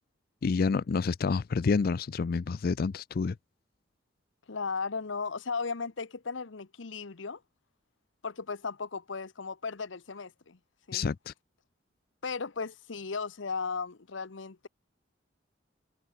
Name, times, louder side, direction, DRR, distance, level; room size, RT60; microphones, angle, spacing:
voice 1, 0.4-3.4 10.9-11.3, left 4 dB, 50° left, 0.4 m, -28 dB
voice 2, 4.5-7.4 8.2-10.6 10.9-11.1 12.2-14.7, left 4 dB, 90° left, 1.0 m, -36 dB
head